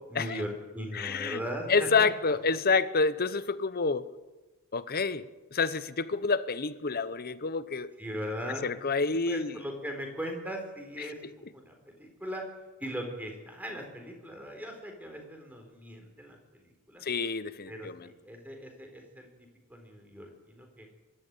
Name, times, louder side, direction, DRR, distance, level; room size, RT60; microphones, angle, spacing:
voice 1, 0.1-2.4 8.0-12.5 12.8-17.0 17.7-19.3 19.7-20.9, equal, 5° right, 3 dB, 4.2 m, -39 dB
voice 2, 0.9-1.4 1.7-4.1 4.7-7.9 8.6-9.6 11.0-11.3 17.0-18.1, left 4 dB, 45° left, 15 dB, 0.9 m, -28 dB
24.0 x 13.0 x 9.1 m, 1.1 s
head